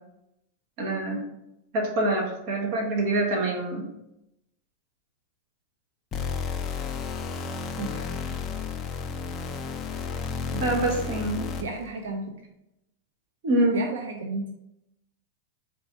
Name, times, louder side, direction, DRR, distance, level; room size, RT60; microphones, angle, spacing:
voice 1, 0.8-1.2 1.7-3.8 10.6-11.5 13.4-13.8, right 1 dB, 45° right, 0 dB, 1.1 m, -25 dB
sound 1, 6.1-11.9, left 5 dB, 20° left, 0.4 m, -32 dB
voice 2, 7.8-8.4 10.5-10.8 11.6-12.3 13.7-14.6, right 3 dB, 90° right, 3 dB, 0.5 m, -34 dB
4.3 x 2.7 x 3.5 m, 0.86 s
supercardioid pair, 160°, 0 cm